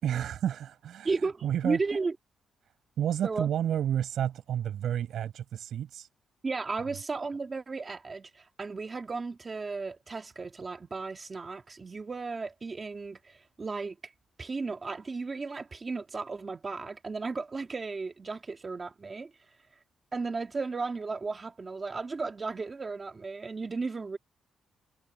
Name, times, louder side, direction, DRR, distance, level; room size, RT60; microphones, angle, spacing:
voice 1, 0.0-1.2 1.4-1.8 3.0-6.1, right 10 dB, 65° right, 6.0 m, -30 dB
voice 2, 1.0-2.1 3.2-3.5 6.4-14.0 14.4-19.3 20.1-24.2, right 4 dB, 25° right, 2.0 m, -34 dB
wide cardioid pair, 165°, 0 cm